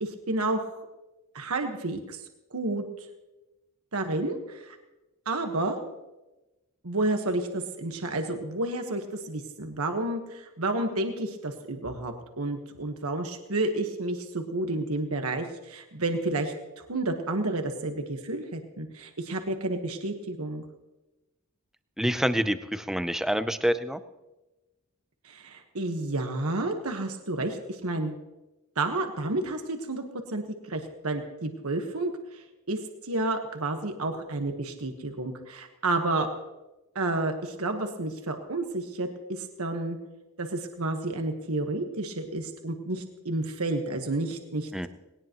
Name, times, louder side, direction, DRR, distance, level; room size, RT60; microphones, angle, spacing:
voice 1, 0.0-0.8 1.3-2.2 2.5-2.9 3.9-4.7 5.2-5.8 6.8-20.6 25.2-28.2 28.8-36.3 36.9-40.0 40.4-44.9, right 2 dB, 75° right, 5 dB, 1.4 m, -31 dB
voice 2, 22.0-24.0 44.7-44.9, equal, ahead, 11 dB, 0.6 m, -27 dB
19.5 x 18.5 x 3.0 m, 1.0 s
head